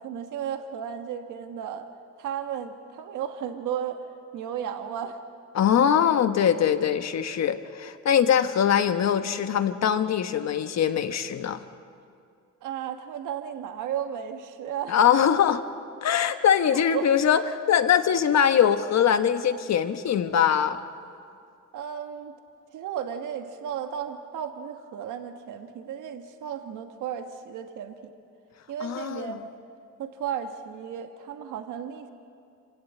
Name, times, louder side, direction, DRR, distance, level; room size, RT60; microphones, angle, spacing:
voice 1, 0.0-1.9 2.2-4.0 4.3-5.2 12.6-15.0 16.7-17.1 21.7-22.3 22.7-28.1 28.7-29.4 30.0-32.1, right 9 dB, 80° right, 6 dB, 1.4 m, -34 dB
voice 2, 5.5-11.6 14.9-15.6 16.0-20.8 28.8-29.4, left 8 dB, 60° left, 9 dB, 1.3 m, -22 dB
26.0 x 17.0 x 8.5 m, 2.4 s
cardioid pair, 90°, 30 cm